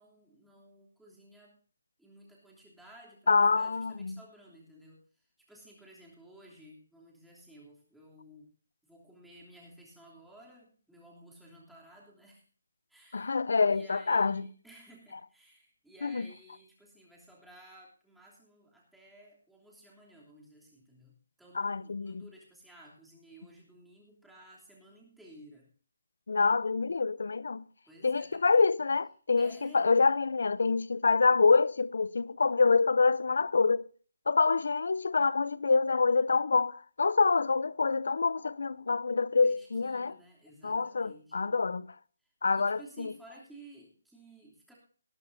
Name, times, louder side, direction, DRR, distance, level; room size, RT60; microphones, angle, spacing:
voice 1, 0.0-1.5 2.0-8.5 8.8-12.4 12.9-13.4 13.7-21.1 21.4-25.7 27.9-28.7 29.4-29.9 39.4-41.5 42.2-44.7, right 1 dB, ahead, 3.0 m, -55 dB
voice 2, 3.3-4.2 13.1-14.5 16.0-16.3 21.5-22.3 26.3-27.7 28.0-33.9 34.3-40.1 40.6-41.9 42.4-43.1, left 4 dB, 70° left, 0.6 m, -26 dB
19.0 x 11.5 x 2.7 m
hypercardioid pair, 165°, 0 cm